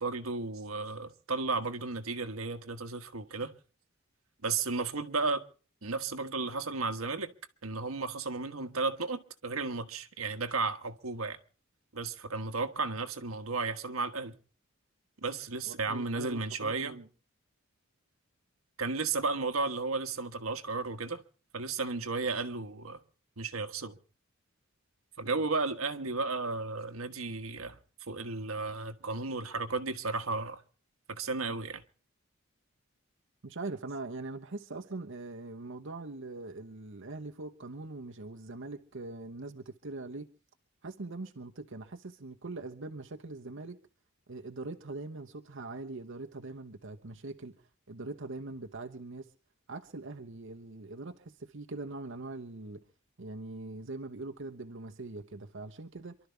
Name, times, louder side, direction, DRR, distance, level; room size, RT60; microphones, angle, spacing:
voice 1, 0.0-3.5 4.4-5.4 5.8-7.3 7.6-11.4 11.9-14.3 15.2-17.0 18.8-21.2 21.5-23.0 23.4-24.0 25.2-27.8 28.1-30.6 31.1-31.8, right 3 dB, 90° right, 1.4 m, -34 dB
voice 2, 15.7-17.1 25.2-25.4 33.4-40.3 40.8-43.8 44.3-47.6 47.9-49.3 49.7-52.8 53.2-56.2, right 2 dB, 65° right, 1.0 m, -42 dB
28.0 x 12.5 x 3.4 m
head